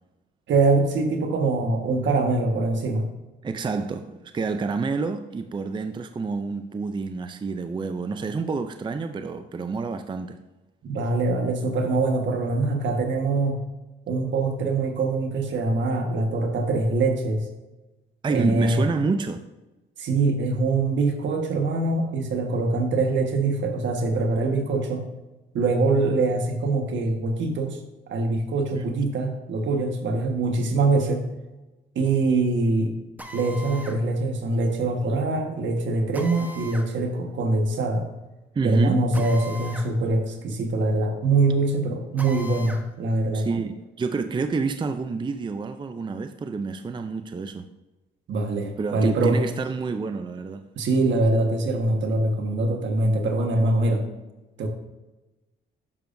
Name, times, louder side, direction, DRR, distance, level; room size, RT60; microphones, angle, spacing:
voice 1, 0.5-3.1 10.8-13.7 14.1-17.5 18.3-18.8 20.0-25.1 25.5-27.8 28.1-31.2 31.9-32.9 33.3-38.1 38.6-43.5 48.3-49.4 50.8-54.0 54.6-54.7, right 2 dB, 65° right, 1.5 m, -23 dB
voice 2, 3.4-10.4 18.2-19.4 28.7-28.8 38.5-39.0 43.3-47.7 48.8-50.6, right 4 dB, 25° right, 0.5 m, -28 dB
Drill, 33.2-34.0 36.1-36.9 39.1-39.9 40.3-40.4 42.2-42.9, equal, 10° right, 1.0 m, -39 dB
10.5 x 6.8 x 2.6 m
cardioid pair, 90°, 20 cm